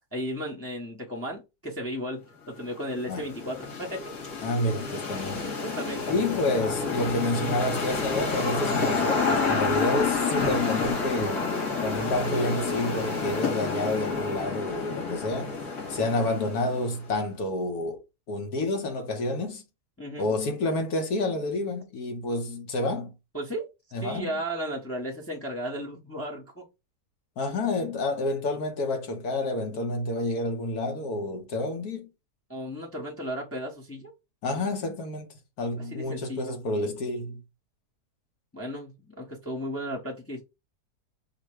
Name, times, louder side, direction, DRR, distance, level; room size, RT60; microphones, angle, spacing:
voice 1, 0.1-4.0 5.6-6.1 20.0-20.3 23.3-23.7 24.0-26.6 32.5-34.1 35.7-36.5 38.5-40.4, equal, 10° left, 0.7 m, -35 dB
sound 1, 2.6-17.1, left 4 dB, 85° left, 2.6 m, -29 dB
voice 2, 4.4-5.6 6.1-11.5 11.8-15.6 15.9-18.0 18.3-19.6 20.2-23.1 23.9-24.4 27.4-32.1 34.4-35.3 35.6-37.4, left 2 dB, 70° left, 1.5 m, -29 dB
4.7 x 2.2 x 4.7 m
omnidirectional pair, 1.7 m